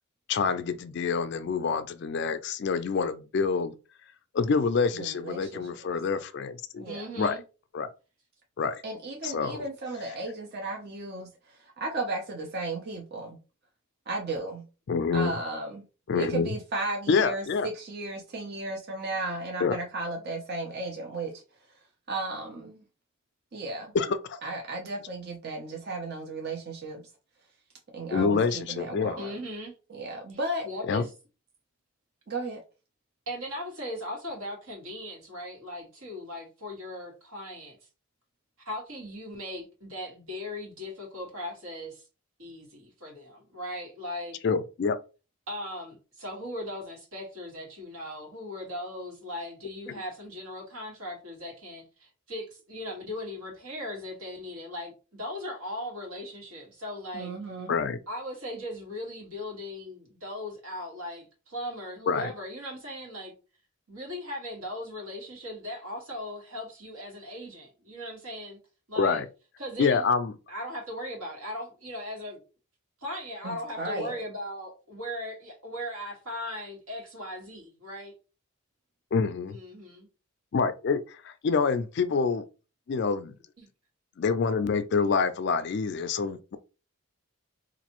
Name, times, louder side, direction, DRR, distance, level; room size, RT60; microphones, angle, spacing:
voice 1, 0.3-3.7 4.3-6.8 7.2-7.4 7.7-7.9 8.6-8.8 9.2-9.7 14.9-15.3 16.1-16.5 17.1-17.7 19.6-19.8 23.9-24.4 28.1-29.2 30.9-31.0 44.4-45.0 57.7-58.0 62.1-62.3 69.0-69.3 69.8-70.3 79.1-79.6 80.5-82.4 82.9-83.3 84.2-86.6, left 5 dB, 50° left, 0.3 m, -27 dB
voice 2, 5.0-5.7 6.8-7.1 8.8-13.4 14.1-14.6 15.1-15.8 16.1-21.4 22.1-22.8 23.5-23.9 24.4-27.0 27.9-29.4 29.9-30.7 32.3-32.6 57.1-57.8 73.4-74.2, right 2 dB, 45° right, 0.6 m, -35 dB
voice 3, 6.8-7.4 29.2-29.7 30.3-30.4 30.6-31.1 33.3-37.8 38.6-42.0 42.4-44.4 45.5-57.3 58.1-63.3 63.9-68.6 68.9-69.2 69.6-70.1 70.5-72.4 73.0-78.1 79.5-80.1 83.6-83.7, left 1 dB, 75° right, 1.7 m, -38 dB
4.0 x 2.6 x 2.9 m
head